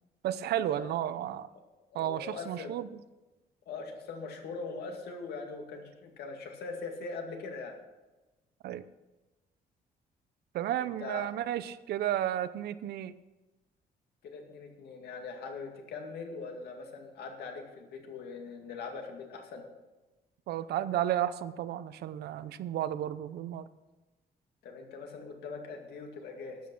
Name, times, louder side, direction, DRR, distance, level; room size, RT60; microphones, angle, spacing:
voice 1, 0.2-1.5 1.9-3.0 8.6-8.8 10.5-13.1 20.5-23.7, right 11 dB, 80° right, 14 dB, 0.6 m, -33 dB
voice 2, 1.9-2.7 3.7-7.7 10.8-11.3 14.2-19.6 24.6-26.6, left 4 dB, 80° left, 3 dB, 2.2 m, -41 dB
12.5 x 8.6 x 6.1 m, 1.1 s
cardioid pair, 175°, 16 cm